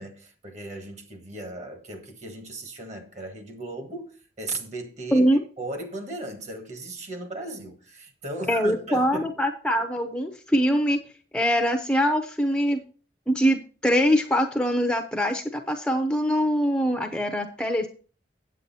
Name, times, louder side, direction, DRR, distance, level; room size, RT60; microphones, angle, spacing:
voice 1, 0.0-5.3 5.6-9.3, right 2 dB, 40° right, 1.6 m, -36 dB
voice 2, 8.5-11.0 11.3-12.8 13.3-17.9, equal, 5° left, 0.7 m, -23 dB
8.8 x 8.2 x 4.2 m
head